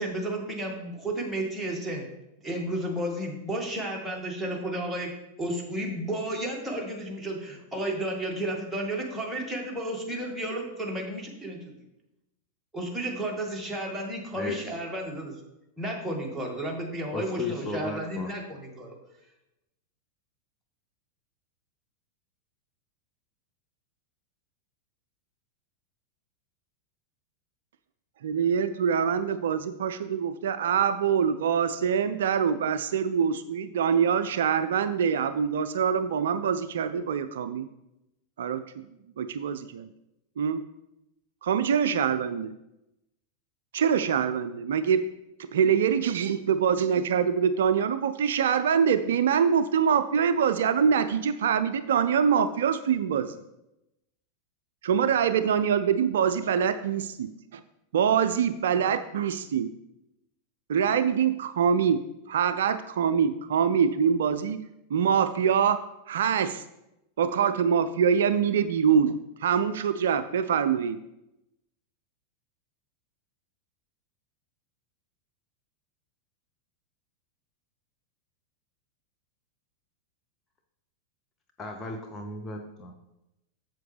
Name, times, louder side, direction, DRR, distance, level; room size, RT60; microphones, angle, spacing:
voice 1, 0.0-2.1 2.4-5.1 5.4-11.7 12.7-15.3 15.8-19.0, right 1 dB, ahead, -2 dB, 2.0 m, -32 dB
voice 2, 17.1-18.3 81.6-82.9, left 3 dB, 20° left, 2 dB, 0.8 m, -35 dB
voice 3, 28.2-37.7 38.4-38.8 39.2-39.9 40.4-40.6 41.4-42.5 43.7-45.0 45.5-53.3 54.8-57.6 57.9-59.7 60.7-62.0 62.3-64.6 64.9-66.6 67.2-71.0, right 7 dB, 60° right, 11 dB, 0.3 m, -24 dB
7.5 x 7.2 x 3.4 m, 0.89 s
figure-of-eight pair, 90°, 0 cm